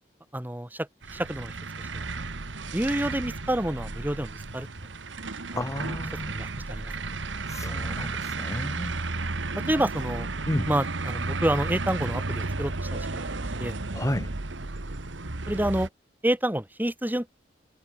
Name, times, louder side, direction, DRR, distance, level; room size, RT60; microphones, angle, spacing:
voice 1, 0.3-2.0 2.7-4.7 6.3-6.9 9.6-10.3 10.7-13.8 15.5-15.9 16.2-17.3, right 1 dB, 10° right, 1.7 m, -29 dB
sound 1, 1.0-15.9, right 3 dB, 90° right, 1.6 m, -33 dB
voice 2, 5.6-6.3 7.5-9.0 10.5-10.7 13.9-14.3, left 1 dB, 15° left, 2.3 m, -31 dB
head